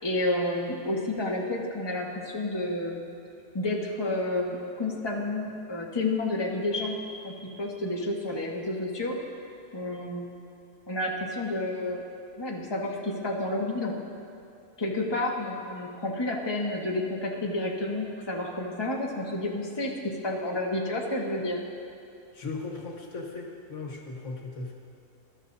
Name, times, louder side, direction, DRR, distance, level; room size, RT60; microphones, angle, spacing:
voice 1, 0.0-3.0 3.5-7.3 7.6-9.2 9.7-10.3 10.9-12.0 12.4-13.9 14.8-21.6, left 2 dB, 20° left, -2 dB, 1.3 m, -30 dB
voice 2, 22.3-24.7, left 3 dB, 70° left, -1 dB, 1.7 m, -37 dB
21.5 x 12.5 x 2.7 m, 2.7 s
omnidirectional pair, 1.3 m